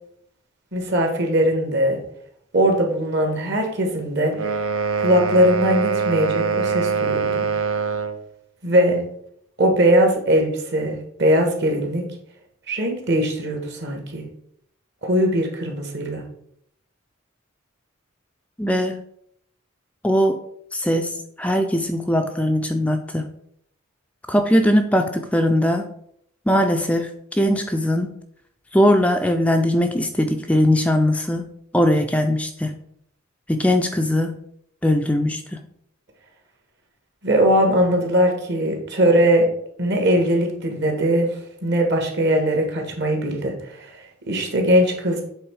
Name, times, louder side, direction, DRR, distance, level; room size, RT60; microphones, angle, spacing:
voice 1, 0.7-2.0 2.5-4.6 5.0-7.5 8.6-9.0 9.6-12.0 12.7-14.3 15.0-16.2 37.2-39.5 39.8-41.3 41.6-43.5 44.3-45.2, equal, 55° right, 2 dB, 1.7 m, -20 dB
sound 1, 4.3-8.2, right 5 dB, 70° right, 0.5 m, -23 dB
voice 2, 18.6-19.0 20.0-20.4 20.7-21.1 21.4-23.3 24.3-25.9 26.5-28.1 28.7-31.5 31.7-32.8 33.5-34.4 34.8-35.6, left 1 dB, 5° left, 5 dB, 0.4 m, -20 dB
7.9 x 3.7 x 4.7 m, 0.70 s
head